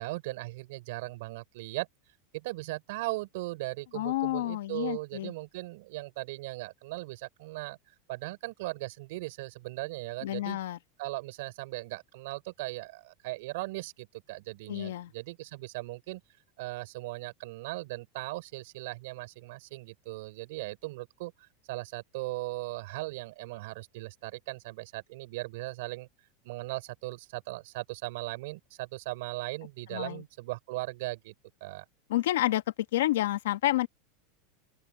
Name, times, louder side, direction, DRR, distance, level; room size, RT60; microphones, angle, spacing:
voice 1, 0.0-1.9 2.3-7.8 8.1-10.6 11.0-16.2 16.6-26.1 26.4-31.3 31.6-31.8, right 21 dB, 60° right, 4.1 m, -38 dB
voice 2, 3.9-5.3 10.2-10.8 14.7-15.1 29.9-30.2 32.1-32.6 32.9-33.9, left 15 dB, 85° left, 1.4 m, -29 dB
open air
supercardioid pair, 170°, 0 cm